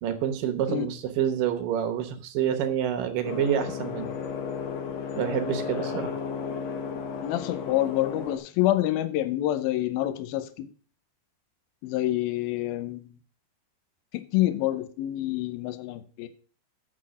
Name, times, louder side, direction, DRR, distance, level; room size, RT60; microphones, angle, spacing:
voice 1, 0.0-4.1 5.2-6.1, right 9 dB, 70° right, 7 dB, 2.6 m, -27 dB
sound 1, 3.2-8.4, left 6 dB, 65° left, 1.7 m, -33 dB
voice 2, 7.2-10.7 11.8-13.2 14.1-16.3, left 15 dB, 80° left, 12 dB, 2.6 m, -27 dB
8.4 x 6.5 x 6.2 m, 0.41 s
omnidirectional pair, 4.3 m